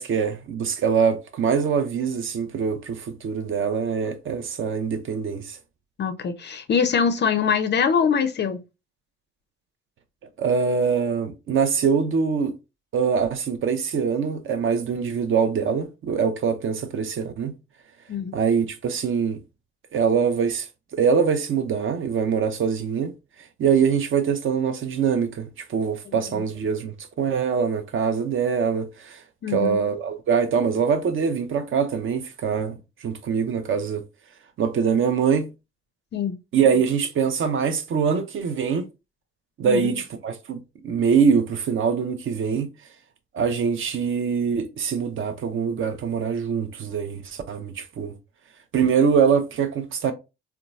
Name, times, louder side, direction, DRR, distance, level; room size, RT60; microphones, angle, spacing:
voice 1, 0.0-5.6 10.4-12.5 12.9-17.5 18.3-19.4 19.9-23.1 23.6-29.2 29.5-34.0 34.6-35.5 36.5-38.9 39.6-42.7 43.3-48.1 48.7-50.1, right 6 dB, 40° right, 0.6 m, -23 dB
voice 2, 6.0-8.6 18.1-18.4 26.3-26.4 29.4-29.8 36.1-36.4 39.6-39.9, left 6 dB, 35° left, 0.5 m, -23 dB
3.8 x 2.2 x 2.4 m
figure-of-eight pair, 45°, 31 cm